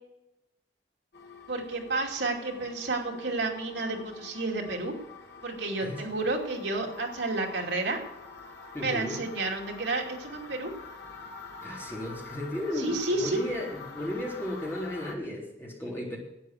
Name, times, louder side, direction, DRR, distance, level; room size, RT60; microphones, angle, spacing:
sound 1, 1.1-15.1, left 4 dB, 60° left, 1.9 m, -47 dB
voice 1, 1.5-4.9 5.4-8.0 8.8-10.7 12.8-13.4, right 2 dB, 75° right, 1 dB, 2.6 m, -31 dB
voice 2, 8.7-9.2 11.6-16.2, left 1 dB, 10° left, -3 dB, 3.7 m, -34 dB
12.0 x 9.2 x 8.0 m, 0.88 s
head